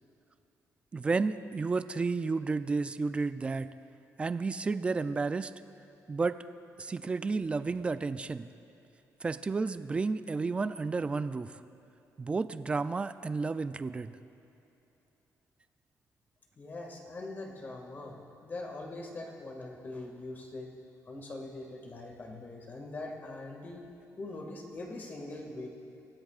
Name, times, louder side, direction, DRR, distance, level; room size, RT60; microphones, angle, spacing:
voice 1, 0.9-3.7 4.2-5.5 6.1-6.4 6.8-8.5 9.2-11.6 12.2-14.1, right 4 dB, 20° right, 12 dB, 0.3 m, -31 dB
voice 2, 16.6-20.7 21.1-23.8 24.2-25.7, left 2 dB, 30° left, 0 dB, 1.9 m, -42 dB
24.5 x 16.5 x 2.4 m, 2.9 s
cardioid pair, 160°, 6 cm